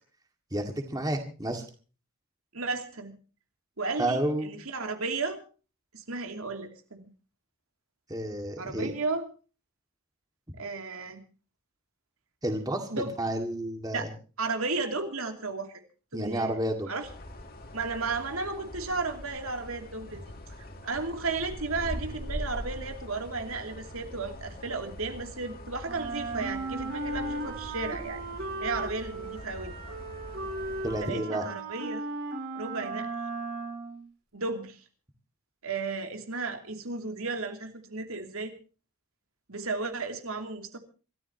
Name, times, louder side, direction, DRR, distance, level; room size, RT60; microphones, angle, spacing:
voice 1, 0.5-1.7 4.0-4.5 8.1-8.9 12.4-14.1 16.1-16.9 30.8-31.4, right 1 dB, 15° right, 5 dB, 2.0 m, -30 dB
voice 2, 2.5-3.2 3.8-5.4 5.9-7.1 8.6-9.2 10.6-11.2 12.9-13.1 13.9-14.1 14.4-15.8 16.1-16.6 16.9-17.1 17.7-20.2 20.8-28.2 28.6-29.7 31.0-32.0 32.5-33.1 34.3-34.8 35.6-38.5 39.5-40.8, right 3 dB, 70° right, 5 dB, 2.8 m, -34 dB
sound 1, 17.0-31.0, equal, 45° left, 2.4 m, -42 dB
Wind instrument woodwind instrument, 25.8-34.0, right 2 dB, 55° right, 5.8 m, -36 dB
27.0 x 14.0 x 2.9 m, 0.36 s
head